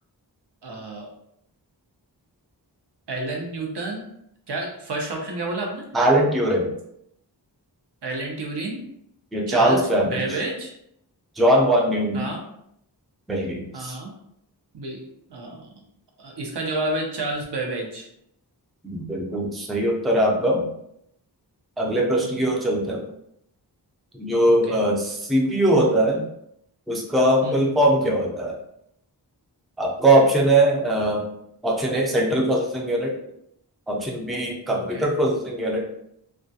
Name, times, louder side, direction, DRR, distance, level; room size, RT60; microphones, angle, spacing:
voice 1, 0.6-1.1 3.1-4.0 4.5-5.8 8.0-8.8 9.5-10.7 12.1-12.4 13.7-14.1 14.7-15.0 15.3-15.8 16.2-18.1 22.2-22.5 24.5-24.8 27.4-27.8 34.7-35.1, right 2 dB, 75° right, 0 dB, 0.7 m, -30 dB
voice 2, 5.9-6.7 9.3-10.2 11.4-12.2 13.3-14.0 18.8-20.6 21.8-23.1 24.1-26.3 26.9-28.6 29.8-31.3 31.6-33.1 33.9-35.9, right 1 dB, ahead, -1 dB, 0.4 m, -21 dB
2.3 x 2.2 x 2.7 m, 0.75 s
wide cardioid pair, 70°, 41 cm